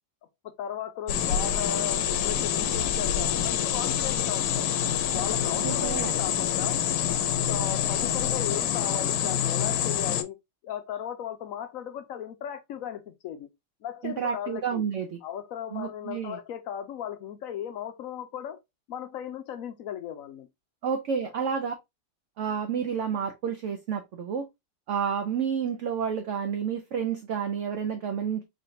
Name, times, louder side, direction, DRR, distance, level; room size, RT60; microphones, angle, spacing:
voice 1, 0.6-4.7 5.1-6.8 7.5-10.3 10.6-13.5 13.8-14.8 15.2-18.6 18.9-20.5 21.2-21.3, left 9 dB, 70° left, 0.8 m, -36 dB
sound 1, 1.1-10.2, left 9 dB, 85° left, 1.3 m, -26 dB
voice 2, 5.6-6.1 14.0-15.2 15.7-16.4 20.8-21.7 22.4-24.5 24.9-28.4, right 7 dB, 70° right, 0.7 m, -30 dB
4.2 x 3.3 x 2.6 m
omnidirectional pair, 1.9 m